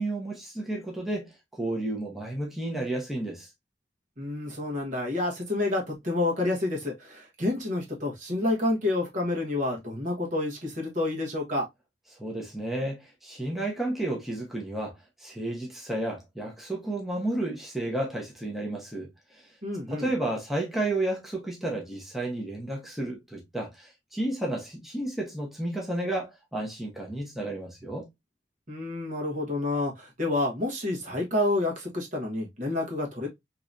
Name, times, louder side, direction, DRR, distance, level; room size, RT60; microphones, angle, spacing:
voice 1, 0.0-3.5 12.2-14.9 15.2-19.1 19.9-28.1, right 1 dB, ahead, 0.9 m, -32 dB
voice 2, 4.2-11.7 19.6-20.1 28.7-33.3, left 2 dB, 45° right, 1.3 m, -29 dB
3.8 x 2.9 x 2.5 m
head